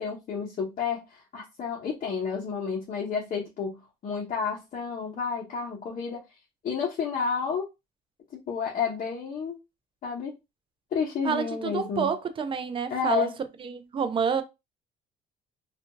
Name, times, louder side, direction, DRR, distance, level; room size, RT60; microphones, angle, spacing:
voice 1, 0.0-6.2 6.6-7.7 8.5-9.6 10.0-10.3 10.9-12.1 12.9-13.3, left 6 dB, 50° left, 0.8 m, -30 dB
voice 2, 11.2-13.3 13.6-14.4, right 6 dB, 30° right, 0.4 m, -28 dB
2.7 x 2.5 x 2.5 m
cardioid pair, 110°, 17 cm